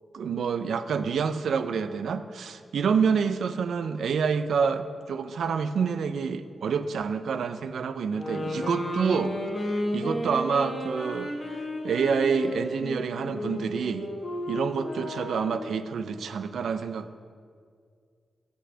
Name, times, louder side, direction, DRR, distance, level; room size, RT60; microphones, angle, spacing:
voice 1, 0.1-9.4 9.9-11.3 11.8-14.1 14.5-17.2, right 6 dB, 85° right, 11 dB, 0.4 m, -27 dB
sound 1, 8.1-15.7, left 1 dB, 25° left, 1.7 m, -33 dB
8.3 x 6.1 x 6.2 m, 2.1 s
wide cardioid pair, 165°, 0 cm